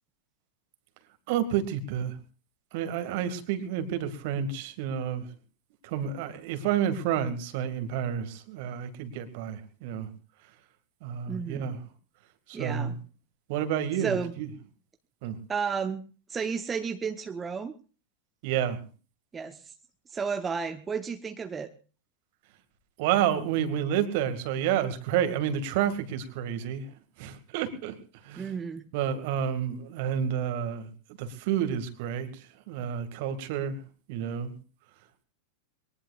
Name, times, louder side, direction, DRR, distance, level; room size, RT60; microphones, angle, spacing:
voice 1, 1.3-2.2 2.7-5.3 5.8-10.1 11.0-11.8 12.5-13.0 13.5-14.5 15.2-15.4 18.4-18.8 23.0-28.5 28.9-30.9 31.2-33.8 34.1-34.5, right 9 dB, 50° right, 10 dB, 2.2 m, -30 dB
voice 2, 11.3-11.7 12.5-12.9 14.0-14.3 15.5-16.0 16.3-17.7 19.3-19.7 20.1-21.7 28.4-28.9, right 6 dB, 15° right, 7 dB, 1.0 m, -32 dB
23.0 x 19.0 x 2.5 m, 0.37 s
figure-of-eight pair, 90°, 0 cm